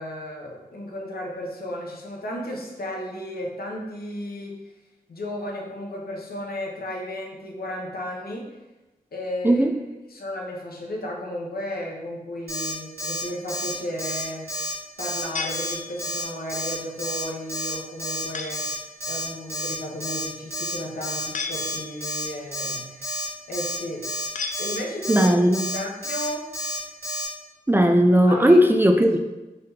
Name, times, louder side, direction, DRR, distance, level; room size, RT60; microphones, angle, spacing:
voice 1, 0.0-4.5 5.1-8.5 9.1-9.6 10.1-14.5 15.0-18.6 19.0-23.1 23.5-24.1 24.6-26.5 28.3-28.6 28.9-29.0, left 1 dB, 75° left, -1 dB, 0.8 m, -33 dB
Alarm, 12.5-12.7 13.0-13.2 13.5-13.7 14.0-14.2 14.5-14.7 15.0-15.2 15.5-15.7 16.0-16.2 16.5-16.7 17.0-17.2 17.5-17.7 18.0-18.2 18.5-18.7 19.0-19.2 19.5-19.7 20.0-20.2 20.5-20.7 21.0-21.2 21.5-21.7 22.0-22.2 22.5-22.7 23.0-23.2 23.5-23.8 24.0-24.3 24.5-24.8 25.0-25.3 25.5-25.8 26.0-26.3 26.5-26.8 27.0-27.3, left 1 dB, 85° right, 1.4 m, -30 dB
sound 1, 15.4-16.3 18.3-18.8 21.3-22.2 24.4-25.2, left 5 dB, 55° left, 0.4 m, -34 dB
voice 2, 25.1-25.7 27.7-29.2, equal, 15° right, 4 dB, 0.3 m, -17 dB
4.0 x 3.4 x 2.7 m, 1.1 s
cardioid pair, 45°, 16 cm